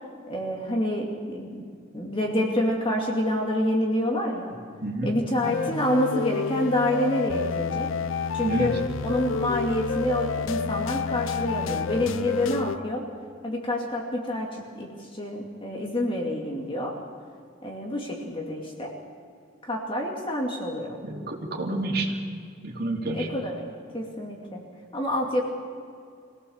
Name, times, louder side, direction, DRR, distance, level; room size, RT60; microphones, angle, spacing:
voice 1, 0.3-1.6 1.9-4.5 5.0-7.9 8.3-8.7 9.0-13.0 13.4-14.5 14.7-14.9 15.2-16.9 17.6-18.9 19.6-20.9 23.1-23.7 23.9-24.6 24.9-25.4, left 1 dB, 25° left, 0 dB, 2.6 m, -27 dB
voice 2, 4.8-5.1 8.4-8.7 21.0-22.2 22.6-23.3, right 2 dB, 50° right, -1 dB, 3.1 m, -28 dB
sound 1, 5.4-12.8, left 5 dB, 90° left, 0.6 m, -29 dB
24.0 x 17.5 x 7.3 m, 2.3 s
head